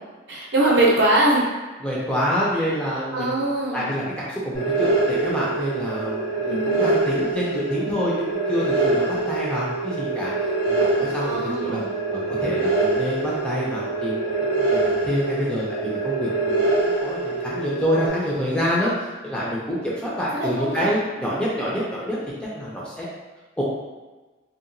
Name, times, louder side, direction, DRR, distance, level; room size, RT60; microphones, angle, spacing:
voice 1, 0.3-1.4 3.1-3.9 6.4-6.9 11.2-11.8 20.4-20.9, right 1 dB, 60° right, -4 dB, 0.6 m, -22 dB
voice 2, 1.8-10.4 10.7-11.8 12.1-23.1 23.6-23.7, equal, 5° left, -7 dB, 0.4 m, -27 dB
sound 1, 4.5-18.1, right 3 dB, 85° left, 1.1 m, -24 dB
2.8 x 2.2 x 2.5 m, 1.2 s
head